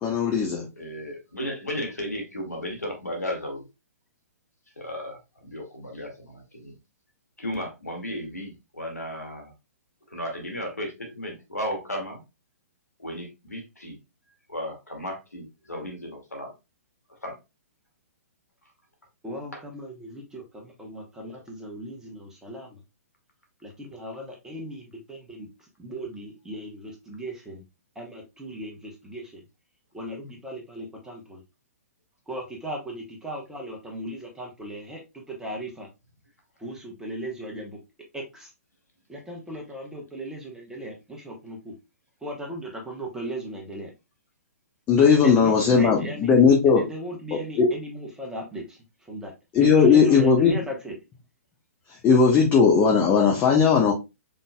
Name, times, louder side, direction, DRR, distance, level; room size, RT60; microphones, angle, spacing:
voice 1, 0.0-0.7 44.9-46.8 47.3-47.7 49.5-50.5 52.0-53.9, left 6 dB, 20° left, 0 dB, 0.8 m, -18 dB
voice 2, 0.8-3.6 4.8-6.7 7.4-9.5 10.1-12.2 13.0-14.0 14.5-16.5 17.2-17.4 21.2-21.3, equal, 80° left, 3 dB, 2.1 m, -34 dB
voice 3, 19.2-22.8 23.6-25.5 25.8-27.6 27.9-29.4 29.9-31.4 32.3-35.9 36.6-37.8 38.1-38.5 39.1-41.7 42.2-43.9 45.4-46.3 46.7-48.8 49.1-49.3 49.6-50.9, right 1 dB, 5° right, 0 dB, 1.1 m, -37 dB
5.5 x 3.8 x 2.3 m, 0.24 s
figure-of-eight pair, 120°, 8 cm